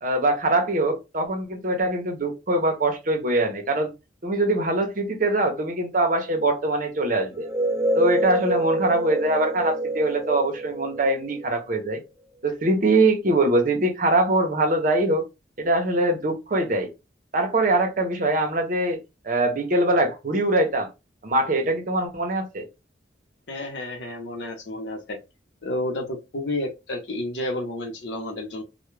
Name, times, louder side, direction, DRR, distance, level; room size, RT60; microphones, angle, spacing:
voice 1, 0.0-3.9 4.2-7.5 7.9-12.0 12.4-15.2 15.6-16.9 17.3-19.0 19.2-20.9 21.2-22.7, right 2 dB, 45° right, 0.7 m, -23 dB
sound 1, 7.3-11.9, right 1 dB, 15° right, 0.4 m, -27 dB
voice 2, 23.5-25.2 25.6-28.6, left 1 dB, 75° left, 0.8 m, -31 dB
2.2 x 2.2 x 3.1 m
head